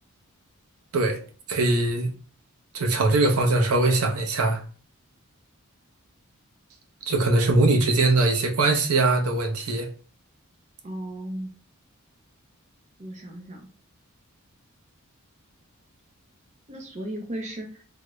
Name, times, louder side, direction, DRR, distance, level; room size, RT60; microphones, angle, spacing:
voice 1, 1.5-2.1 2.7-4.6 7.1-9.9, right 2 dB, 75° right, 0.6 m, -21 dB
voice 2, 10.8-11.5 13.0-13.7 16.7-17.8, right 1 dB, 30° right, 0.5 m, -35 dB
3.6 x 2.1 x 3.0 m
head